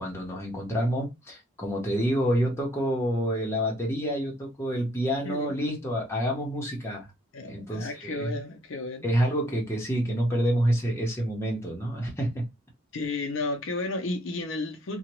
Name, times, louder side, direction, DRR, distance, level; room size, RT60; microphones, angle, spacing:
voice 1, 0.0-7.1 7.4-8.3 9.0-12.4, equal, 15° left, 0.9 m, -28 dB
voice 2, 7.3-9.1 12.9-15.0, left 2 dB, 65° left, 0.6 m, -33 dB
2.8 x 2.2 x 3.0 m
head